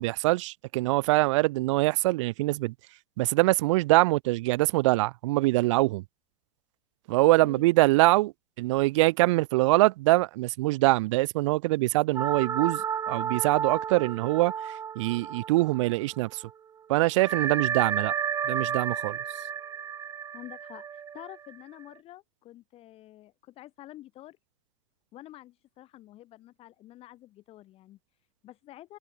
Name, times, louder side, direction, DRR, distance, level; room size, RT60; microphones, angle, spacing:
voice 1, 0.0-2.7 3.2-6.0 7.1-8.3 8.6-12.8 13.1-14.5 15.0-16.4 16.9-18.1 18.5-19.2, right 20 dB, 60° right, 0.5 m, -23 dB
voice 2, 7.4-7.7 20.3-24.4 25.1-29.0, left 15 dB, 35° left, 1.5 m, -48 dB
sound 1, 12.2-16.2 16.5-16.6 17.2-21.8, right 8 dB, 20° right, 0.7 m, -32 dB
hypercardioid pair, 130°, 18 cm